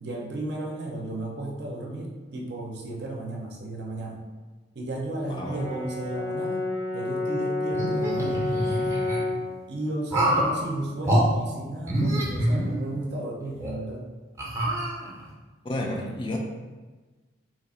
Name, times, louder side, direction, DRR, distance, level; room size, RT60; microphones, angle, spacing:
voice 1, 0.0-4.2 4.7-6.7 6.9-8.4 9.7-14.1, right 1 dB, 60° right, 0 dB, 0.6 m, -34 dB
Brass instrument, 5.2-9.5, left 2 dB, 80° left, 0.6 m, -29 dB
sound 1, 7.7-9.2 10.1-10.5 11.0-11.2 11.8-13.1 13.6-13.7 14.4-15.3, right 1 dB, 15° right, 0.6 m, -26 dB
voice 2, 15.6-16.4, left 1 dB, 25° left, 0 dB, 0.3 m, -31 dB
3.0 x 2.4 x 4.1 m, 1.3 s
head